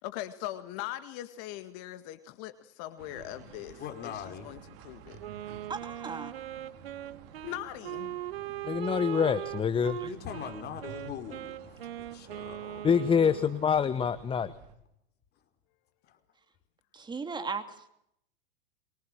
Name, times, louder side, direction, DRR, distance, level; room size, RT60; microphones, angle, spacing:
voice 1, 0.0-5.2 7.4-8.2, left 14 dB, 50° left, 10 dB, 2.0 m, -41 dB
sound 1, 3.0-14.8, right 8 dB, 45° right, 4.4 m, -51 dB
voice 2, 3.8-4.5 10.0-12.9 16.1-16.2, left 8 dB, 30° left, 6 dB, 5.0 m, -42 dB
Wind instrument woodwind instrument, 5.2-13.6, right 11 dB, 70° right, 1.5 m, -40 dB
voice 3, 5.7-6.4 10.0-10.1 16.9-17.9, right 4 dB, 15° right, 8 dB, 2.7 m, -37 dB
voice 4, 8.6-10.0 12.8-14.5, left 7 dB, 15° left, 15 dB, 1.0 m, -26 dB
24.5 x 23.0 x 7.8 m, 0.76 s
hypercardioid pair, 110°, 31 cm